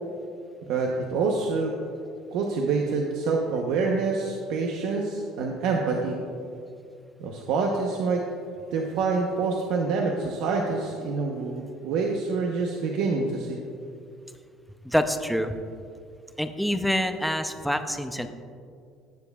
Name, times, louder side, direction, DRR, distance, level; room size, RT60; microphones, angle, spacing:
voice 1, 0.7-1.7 2.3-6.2 7.2-8.2 8.7-13.6, right 4 dB, 70° right, 1 dB, 0.8 m, -26 dB
voice 2, 14.8-15.6 16.4-18.3, equal, ahead, 7 dB, 0.6 m, -26 dB
16.5 x 7.1 x 2.3 m, 2.3 s
cardioid pair, 125°, 0 cm